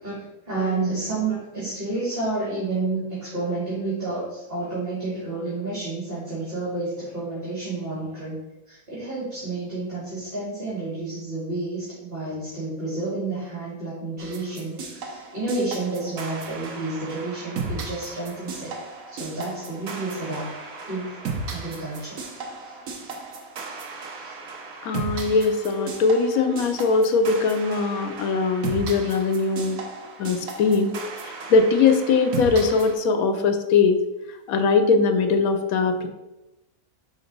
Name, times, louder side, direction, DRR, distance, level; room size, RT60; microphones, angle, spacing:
voice 1, 0.0-18.8 19.1-20.5 20.9-21.2 21.5-22.2 22.6-22.8 24.1-24.4, right 3 dB, 40° right, -9 dB, 2.4 m, -30 dB
sound 1, 14.2-32.9, right 4 dB, 70° right, 1.2 m, -35 dB
voice 2, 24.8-29.8 30.2-30.9 31.2-34.0 34.5-36.1, left 4 dB, 75° left, 7 dB, 1.1 m, -21 dB
5.0 x 3.9 x 5.2 m, 0.99 s
omnidirectional pair, 1.6 m